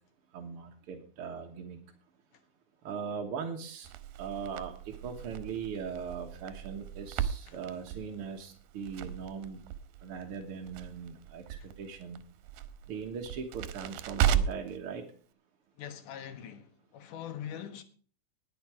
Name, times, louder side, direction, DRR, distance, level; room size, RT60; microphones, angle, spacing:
voice 1, 0.3-1.8 2.8-3.9 4.2-9.6 10.0-12.2 12.9-15.0, right 6 dB, 55° right, 1.6 m, -40 dB
Crackle, 3.8-14.8, right 9 dB, 80° right, 2.5 m, -36 dB
voice 2, 15.8-17.8, left 9 dB, 65° left, 2.8 m, -43 dB
20.0 x 6.7 x 4.8 m
omnidirectional pair, 4.2 m